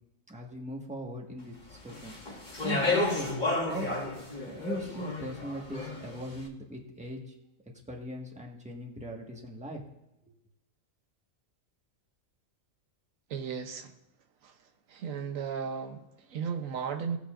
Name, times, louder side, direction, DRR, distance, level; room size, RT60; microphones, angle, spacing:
voice 1, 0.3-2.2 2.6-3.4 3.6-3.9 4.5-7.3 7.9-9.8, right 1 dB, 5° right, 0 dB, 1.4 m, -39 dB
Speech, 1.9-6.2, left 2 dB, 35° left, 1.7 m, -32 dB
voice 2, 13.3-13.9 14.4-14.5 14.9-17.2, right 6 dB, 85° right, 6 dB, 1.2 m, -35 dB
19.0 x 6.9 x 2.5 m, 0.89 s
omnidirectional pair, 1.4 m